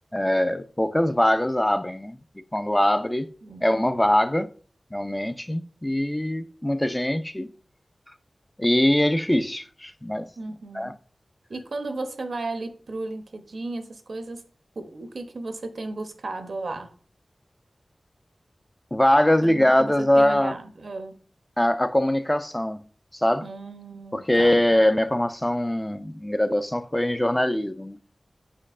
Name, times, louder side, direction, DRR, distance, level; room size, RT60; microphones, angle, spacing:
voice 1, 0.1-2.2 2.5-3.3 3.6-4.5 4.9-7.5 8.6-10.3 10.8-10.9 18.9-20.5 21.6-22.8 23.1-23.4 24.1-28.0, left 1 dB, 15° left, 0.3 m, -22 dB
voice 2, 10.4-10.9 11.5-14.4 14.8-16.9 19.4-21.2 23.4-24.6, right 2 dB, 80° right, 0.6 m, -35 dB
4.7 x 4.3 x 2.4 m
wide cardioid pair, 55°, 0 cm